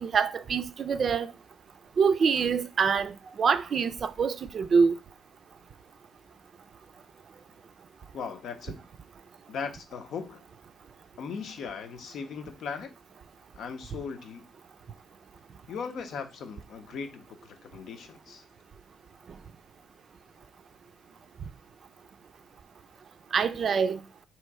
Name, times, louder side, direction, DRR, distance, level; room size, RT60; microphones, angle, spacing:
voice 1, 0.0-1.3 2.0-5.0 23.3-24.0, right 6 dB, 50° right, 0.4 m, -25 dB
voice 2, 8.1-8.8 9.5-10.4 11.2-12.9 13.6-14.4 15.7-18.4, left 5 dB, 70° left, 0.7 m, -38 dB
3.2 x 2.9 x 4.6 m
cardioid pair, 90°, 0 cm